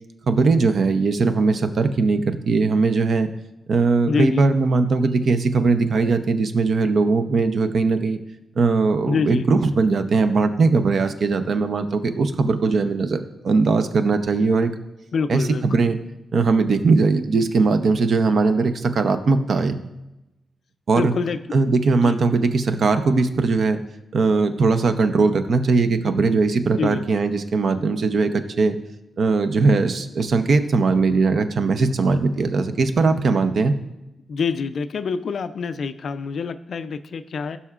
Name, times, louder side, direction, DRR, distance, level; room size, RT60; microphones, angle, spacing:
voice 1, 0.3-3.3 3.7-8.2 8.6-14.7 15.3-16.0 16.3-19.8 20.9-21.1 21.5-23.8 24.1-28.8 29.2-33.7, right 4 dB, 60° right, 9 dB, 0.6 m, -20 dB
voice 2, 4.1-4.4 9.1-9.5 15.1-15.9 21.0-21.4 22.0-22.2 26.8-27.0 31.4-31.5 34.3-37.6, left 5 dB, 60° left, 12 dB, 0.4 m, -26 dB
16.5 x 5.6 x 2.4 m, 0.96 s
wide cardioid pair, 120°, 0 cm